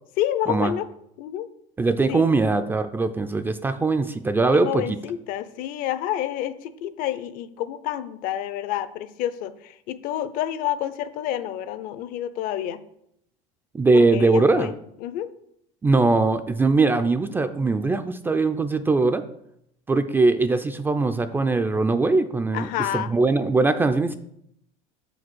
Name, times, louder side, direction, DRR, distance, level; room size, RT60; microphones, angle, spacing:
voice 1, 0.2-0.9 1.2-1.5 2.1-2.3 4.5-12.8 13.9-14.7 15.0-15.3 22.5-23.1, left 12 dB, 55° left, 14 dB, 0.6 m, -29 dB
voice 2, 1.8-5.0 13.7-14.7 15.8-19.2 19.9-22.7 22.9-24.2, right 3 dB, 10° right, 9 dB, 0.3 m, -21 dB
6.3 x 5.0 x 6.1 m, 0.75 s
supercardioid pair, 130°, 17 cm